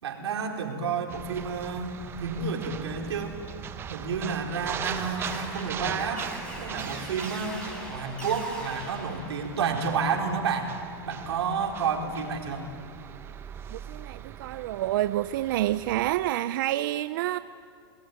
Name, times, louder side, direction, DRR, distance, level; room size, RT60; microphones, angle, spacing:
voice 1, 0.0-3.4 3.9-6.3 6.6-7.6 7.9-10.7 11.1-12.7, right 5 dB, 90° right, 2 dB, 4.0 m, -30 dB
sound 1, 1.1-16.3, right 8 dB, 15° right, 0.9 m, -40 dB
sound 2, 4.7-9.8, equal, 5° left, 5.3 m, -42 dB
voice 2, 13.7-17.4, right 14 dB, 55° right, 13 dB, 0.5 m, -28 dB
27.0 x 19.0 x 9.5 m, 2.3 s
supercardioid pair, 155°, 13 cm